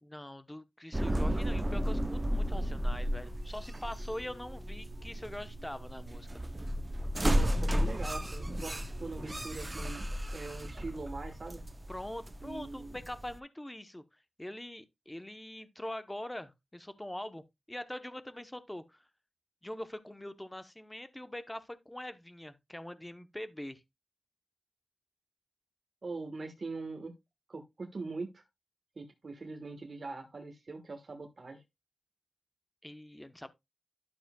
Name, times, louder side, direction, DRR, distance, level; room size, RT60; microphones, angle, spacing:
voice 1, 0.0-6.4 11.9-14.0 14.4-19.0 19.6-23.8 32.8-33.5, left 1 dB, 10° left, 0.8 m, -43 dB
sound 1, 0.9-13.4, equal, 20° right, 0.5 m, -33 dB
voice 2, 7.3-11.6 12.4-13.0 26.0-27.1 27.5-28.4 29.0-31.6, right 3 dB, 50° right, 1.3 m, -42 dB
12.0 x 7.1 x 2.2 m
wide cardioid pair, 100°, 0 cm